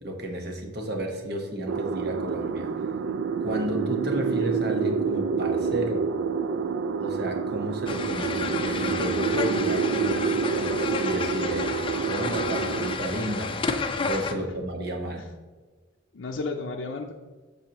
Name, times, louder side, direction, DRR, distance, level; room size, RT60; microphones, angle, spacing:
voice 1, 0.0-2.7 3.4-6.0 7.0-11.7 12.1-13.5 14.1-15.2, right 1 dB, 60° right, 2 dB, 1.2 m, -32 dB
sound 1, 1.7-13.0, right 5 dB, 85° right, 0.4 m, -28 dB
sound 2, 7.9-14.3, left 4 dB, 25° left, 0.4 m, -31 dB
voice 2, 16.1-17.1, left 3 dB, 85° left, 1 dB, 0.5 m, -34 dB
8.1 x 6.9 x 3.0 m, 1.3 s
head